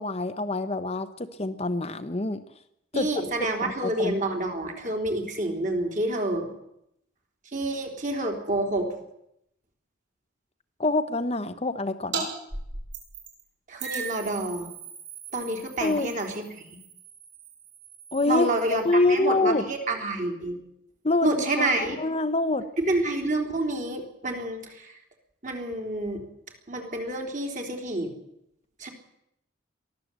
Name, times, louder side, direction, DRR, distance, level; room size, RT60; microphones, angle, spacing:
voice 1, 0.0-2.4 2.9-3.2 3.6-4.3 10.8-12.3 15.8-16.1 18.1-18.5 18.8-19.7 21.0-22.6, left 2 dB, 30° left, 10 dB, 0.9 m, -26 dB
voice 2, 2.9-6.5 7.5-8.9 13.7-14.7 15.3-16.8 18.3-20.6 21.2-22.0 22.8-24.9 25.4-26.2 26.7-28.1 28.8-28.9, right 2 dB, 40° right, 4 dB, 3.8 m, -28 dB
sound 1, 12.1-12.3 12.5-13.4 13.8-18.9, right 5 dB, 60° right, 6.9 m, -38 dB
23.0 x 15.5 x 8.1 m, 0.79 s
head